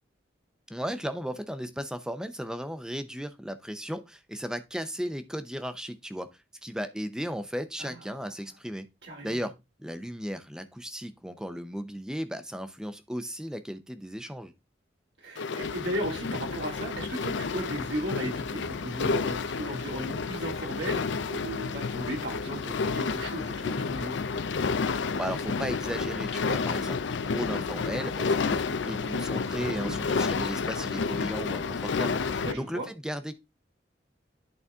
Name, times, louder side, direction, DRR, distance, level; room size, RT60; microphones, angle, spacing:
voice 1, 0.7-6.3 6.6-8.9 9.2-9.5 9.8-14.5 25.2-33.3, equal, 5° right, 0.7 m, -35 dB
voice 2, 9.0-9.4 15.2-24.1 29.5-30.0 32.4-32.9, equal, 70° right, 2.5 m, -36 dB
sound 1, 15.4-32.5, left 4 dB, 80° left, 0.5 m, -30 dB
10.5 x 4.1 x 3.6 m
head